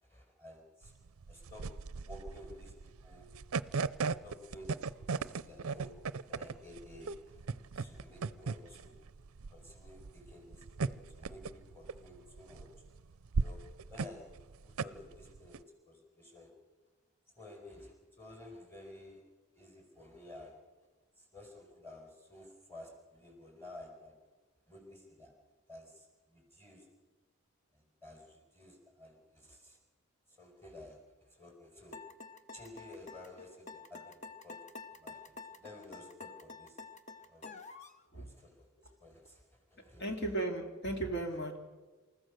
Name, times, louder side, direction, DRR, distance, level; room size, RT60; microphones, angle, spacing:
voice 1, 0.0-0.9 1.3-1.7 2.0-3.3 3.9-5.9 6.3-9.0 9.5-12.7 13.4-13.6 13.9-14.4 14.6-16.5 17.3-19.2 19.5-20.5 21.2-24.2 24.7-25.3 25.7-26.9 27.7-29.8 30.3-32.0 32.5-34.2 34.4-34.6 34.9-35.2 35.5-36.8 37.2-37.5 38.1-38.7 39.0-40.1, left 1 dB, 10° left, 3 dB, 5.0 m, -53 dB
sound 1, 0.8-15.6, right 4 dB, 70° right, 0.5 m, -37 dB
sound 2, 31.9-38.0, left 4 dB, 30° left, 1.0 m, -49 dB
voice 2, 40.0-41.6, right 2 dB, 50° left, 3 dB, 2.5 m, -35 dB
28.0 x 14.5 x 6.6 m, 1.3 s
head